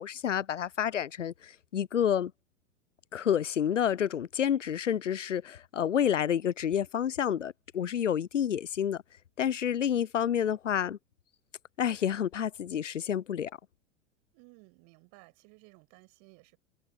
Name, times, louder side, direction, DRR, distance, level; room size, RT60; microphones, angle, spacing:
voice 1, 0.0-2.3 3.1-9.0 9.4-11.0 11.8-13.5, left 9 dB, 90° left, 0.6 m, -29 dB
voice 2, 14.3-16.6, right 32 dB, 50° right, 7.1 m, -57 dB
open air
hypercardioid pair, 90°, 36 cm